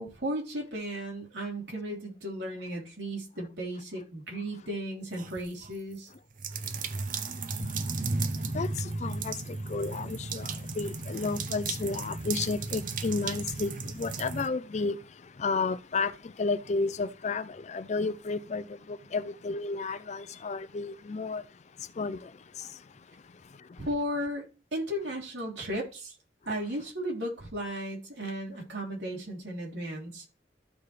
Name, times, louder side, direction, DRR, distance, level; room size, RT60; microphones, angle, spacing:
voice 1, 0.0-6.1 23.8-24.4 24.7-26.1 26.5-30.2, equal, 90° right, 3.2 m, -35 dB
sound 1, 5.1-5.7 6.4-14.5, right 3 dB, 50° right, 0.6 m, -34 dB
voice 2, 9.0-9.3 9.7-10.5 10.8-15.0 15.4-16.1 16.4-21.4 22.0-22.2, left 4 dB, 40° left, 0.4 m, -32 dB
14.0 x 4.8 x 3.3 m
head